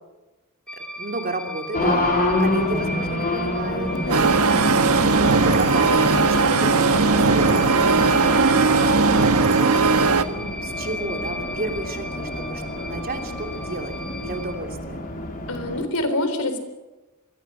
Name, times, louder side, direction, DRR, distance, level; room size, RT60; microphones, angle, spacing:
sound 1, 0.7-14.5, equal, 5° left, 4.7 m, -37 dB
voice 1, 0.7-2.1 2.4-4.6 5.2-13.9 14.2-15.0, right 2 dB, 45° right, 4 dB, 3.0 m, -32 dB
Race car auto racing, 1.7-15.8, left 1 dB, 40° left, 3.8 m, -28 dB
voice 2, 3.9-4.4 15.5-16.6, left 1 dB, 75° left, 9 dB, 4.0 m, -26 dB
sound 2, 4.1-10.2, right 4 dB, 80° right, 1.4 m, -18 dB
27.0 x 22.0 x 6.4 m, 1.1 s
head